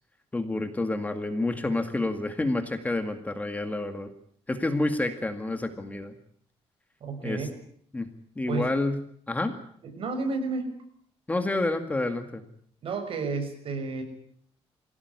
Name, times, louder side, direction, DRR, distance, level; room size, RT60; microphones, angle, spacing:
voice 1, 0.3-4.1 4.5-6.2 7.2-7.4 7.9-8.1 8.4-9.0 9.3-9.5 11.3-12.4, left 2 dB, 15° left, 7 dB, 2.1 m, -28 dB
voice 2, 7.0-7.5 8.5-8.7 9.8-10.7 12.8-14.0, right 4 dB, 55° right, 6 dB, 6.3 m, -31 dB
24.5 x 16.5 x 9.7 m, 0.64 s
cardioid pair, 140°, 11 cm